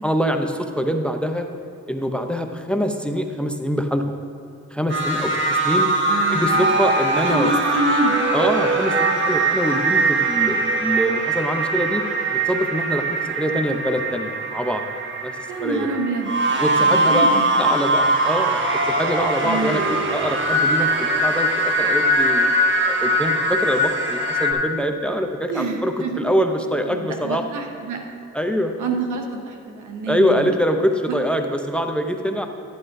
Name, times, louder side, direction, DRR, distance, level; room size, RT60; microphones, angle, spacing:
voice 1, 0.0-1.5 1.9-4.1 4.7-5.9 6.3-7.5 8.3-12.0 12.3-14.8 15.2-15.3 15.6-15.9 16.6-22.5 22.9-27.4 28.3-28.8 30.1-32.5, equal, 5° left, 5 dB, 0.6 m, -24 dB
sound 1, 4.9-24.5, right 2 dB, 40° right, 1.4 m, -21 dB
voice 2, 6.1-6.7 7.2-8.1 15.5-17.4 19.4-19.8 25.5-26.2 26.9-28.0 28.8-30.5 31.1-31.2, right 3 dB, 85° right, 3 dB, 1.2 m, -27 dB
12.0 x 9.9 x 2.6 m, 2.6 s
cardioid pair, 90°, 30 cm